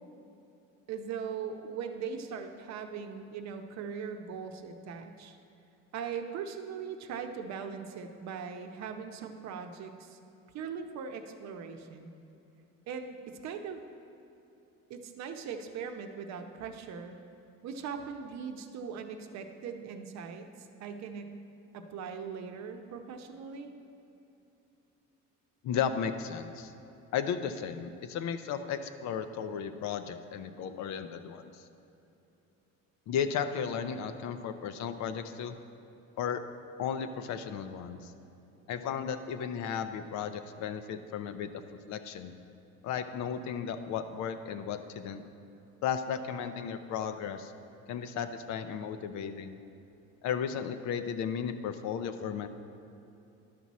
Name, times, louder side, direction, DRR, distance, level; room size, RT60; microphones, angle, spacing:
voice 1, 0.9-5.4 5.9-10.2 10.5-12.1 12.9-13.8 14.9-17.2 17.6-21.3 21.7-23.7, right 6 dB, 60° right, 5 dB, 0.8 m, -40 dB
voice 2, 25.6-26.7 27.1-31.6 33.1-35.5 36.2-36.4 36.8-38.1 38.7-42.3 42.8-45.2 45.8-47.5 47.9-49.6 50.2-52.5, left 7 dB, 65° left, 9 dB, 0.6 m, -34 dB
11.0 x 6.1 x 4.1 m, 2.9 s
cardioid pair, 120°, 30 cm